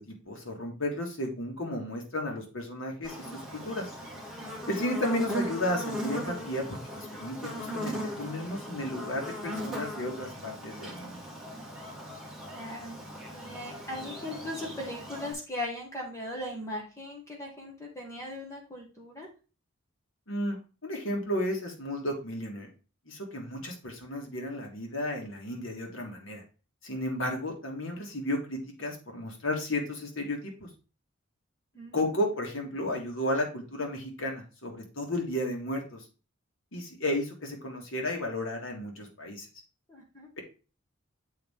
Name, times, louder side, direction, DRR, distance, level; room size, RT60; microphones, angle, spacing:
voice 1, 0.0-3.9 4.7-6.7 6.9-11.2 20.3-20.6 20.8-22.7 23.1-26.4 26.8-30.7 31.9-36.0 36.7-39.5, left 1 dB, 70° left, 1 dB, 1.9 m, -33 dB
Buzz, 3.0-15.3, equal, 5° right, 1.8 m, -38 dB
voice 2, 12.5-13.0 13.3-19.3 26.9-27.0 31.7-32.0 39.9-40.3, left 1 dB, 15° left, -1 dB, 1.5 m, -39 dB
7.6 x 4.3 x 3.6 m, 0.34 s
head